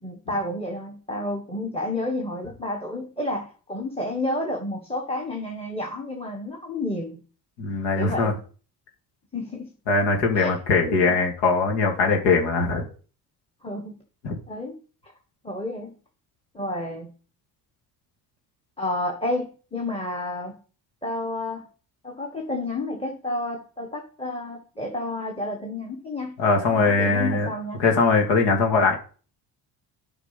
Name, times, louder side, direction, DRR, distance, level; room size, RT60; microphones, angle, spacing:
voice 1, 0.0-7.2 8.0-8.4 9.3-9.7 10.3-10.6 10.9-11.2 13.6-14.0 14.5-14.8 15.0-15.1 15.4-16.0 16.5-17.1 18.8-20.6 21.0-21.7 22.0-26.4 26.7-27.8, left 1 dB, 15° left, 2 dB, 1.4 m, -30 dB
voice 2, 7.6-8.3 9.9-12.8 14.2-14.4 26.4-27.5 27.8-28.9, left 4 dB, 90° left, 2 dB, 2.2 m, -21 dB
8.5 x 5.0 x 5.7 m, 0.39 s
cardioid pair, 100°, 41 cm